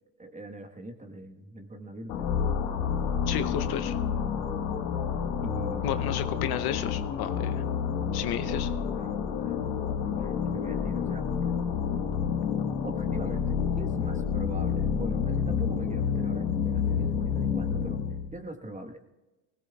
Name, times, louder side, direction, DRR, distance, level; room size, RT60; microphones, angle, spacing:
voice 1, 0.2-2.4 5.4-6.0 8.3-9.6 10.0-11.3 12.8-18.0 18.3-19.0, right 1 dB, 15° right, 6 dB, 1.3 m, -41 dB
sound 1, 2.1-18.3, left 7 dB, 80° left, 1.7 m, -29 dB
voice 2, 3.3-4.0 5.8-7.6 8.1-8.7, left 10 dB, 55° left, 11 dB, 0.8 m, -32 dB
19.5 x 17.5 x 2.4 m, 1.1 s
supercardioid pair, 90°, 44 cm